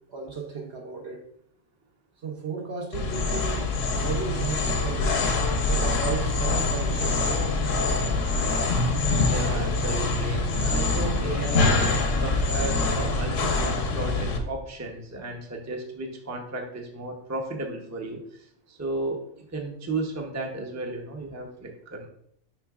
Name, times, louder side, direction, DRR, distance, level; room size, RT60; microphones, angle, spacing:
voice 1, 0.1-1.2 2.2-3.6 4.0-5.2 5.7-7.7, right 5 dB, 55° right, 2 dB, 0.9 m, -34 dB
sound 1, 2.9-14.4, left 3 dB, 65° left, 1.2 m, -25 dB
voice 2, 9.0-11.8 12.2-18.2 18.7-22.1, right 2 dB, 15° right, 1 dB, 0.6 m, -34 dB
10.5 x 3.7 x 2.4 m, 0.67 s
omnidirectional pair, 1.4 m